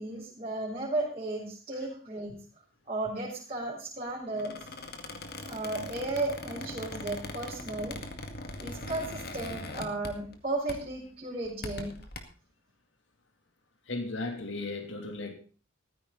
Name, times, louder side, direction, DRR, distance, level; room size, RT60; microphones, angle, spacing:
voice 1, 0.0-2.4 2.9-4.6 5.4-8.0 8.6-11.9, right 2 dB, 30° right, -6 dB, 4.6 m, -34 dB
Squeak, 4.3-10.4 10.7-11.0 11.4-12.2, left 2 dB, 50° left, 2.2 m, -41 dB
voice 2, 13.9-15.3, left 2 dB, 65° left, 4 dB, 3.0 m, -35 dB
14.5 x 14.5 x 4.0 m, 0.39 s
head